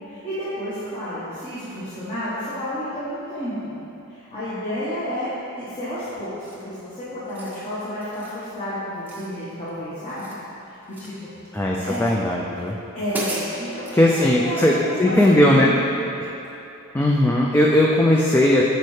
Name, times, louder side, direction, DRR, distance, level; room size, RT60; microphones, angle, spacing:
voice 1, 0.0-3.7 4.1-10.3 10.7-11.1 11.7-12.0 12.9-15.7, equal, 25° left, -13 dB, 1.3 m, -31 dB
sound 1, 6.4-6.8 7.2-7.6 8.0-8.4 9.1-9.7 10.0-11.2 11.8-12.2 12.7-12.8 13.1-14.0, right 1 dB, 10° right, 0.7 m, -36 dB
voice 2, 11.5-12.8 13.9-15.7 16.9-18.6, left 1 dB, 10° left, -3 dB, 0.3 m, -18 dB
8.4 x 5.4 x 3.3 m, 2.9 s
head